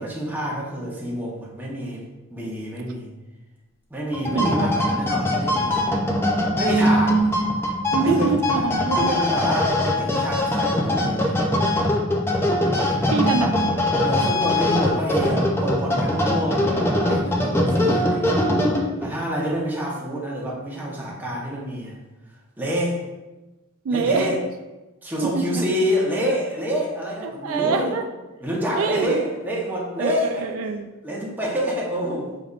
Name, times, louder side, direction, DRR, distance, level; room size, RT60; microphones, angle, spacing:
voice 1, 0.0-3.1 3.9-5.9 6.6-7.5 8.0-8.4 8.9-11.4 14.0-18.4 19.0-22.0 22.6-23.0 23.9-24.4 25.0-28.0 28.4-30.4 31.0-32.4, equal, 10° right, -4 dB, 0.9 m, -27 dB
sound 1, 4.1-19.1, left 1 dB, 10° left, 0.4 m, -22 dB
voice 2, 4.3-4.9 7.9-9.1 13.1-13.8 23.8-24.4 25.2-25.6 27.2-28.0 28.7-29.2 30.0-30.9, right 4 dB, 75° right, 5 dB, 0.3 m, -25 dB
5.1 x 3.4 x 2.4 m, 1.1 s
head